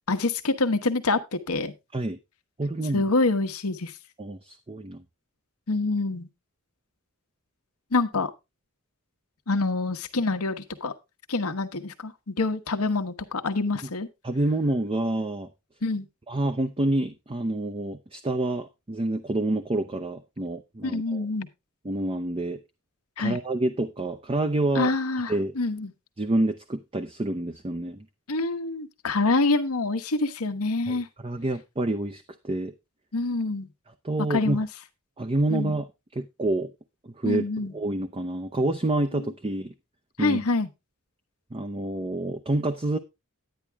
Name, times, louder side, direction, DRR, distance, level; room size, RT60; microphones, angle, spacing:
voice 1, 0.1-1.7 2.9-3.9 5.7-6.3 7.9-8.3 9.5-10.9 11.3-14.1 15.8-16.1 20.8-21.5 23.2-23.4 24.7-25.9 28.3-31.1 33.1-33.7 34.3-34.7 35.5-35.7 37.2-37.7 40.2-40.7, left 3 dB, 80° left, 1.2 m, -26 dB
voice 2, 2.6-3.0 4.2-5.0 14.2-15.5 16.3-21.3 21.8-22.6 23.2-24.9 25.3-25.5 26.2-28.1 30.9-32.7 34.0-34.6 35.2-35.9 36.1-36.7 37.0-39.7 40.2-40.4 41.5-43.0, right 2 dB, 25° right, 0.6 m, -28 dB
10.5 x 9.8 x 3.4 m
head